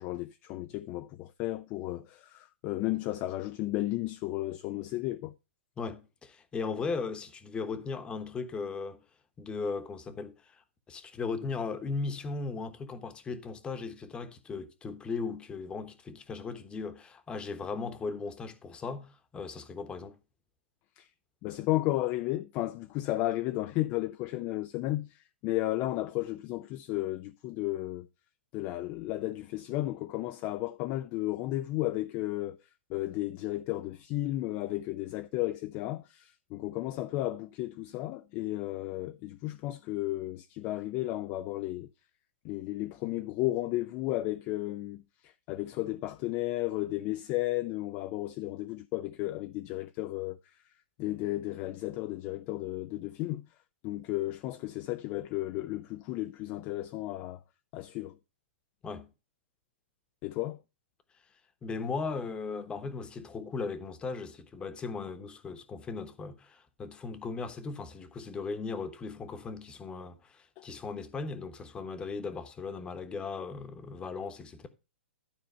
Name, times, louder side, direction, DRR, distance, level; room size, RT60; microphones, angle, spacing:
voice 1, 0.0-5.3 21.0-21.1 21.4-28.1 28.5-32.6 32.9-41.9 42.4-50.5 51.0-53.5 53.8-57.4 57.7-58.2 60.2-60.6 70.6-70.7, left 17 dB, 30° left, 0.4 m, -33 dB
voice 2, 5.8-9.0 9.4-10.6 10.9-20.2 58.8-59.1 61.6-74.7, left 4 dB, 15° left, 1.1 m, -37 dB
12.0 x 4.4 x 5.5 m
hypercardioid pair, 140°, 7 cm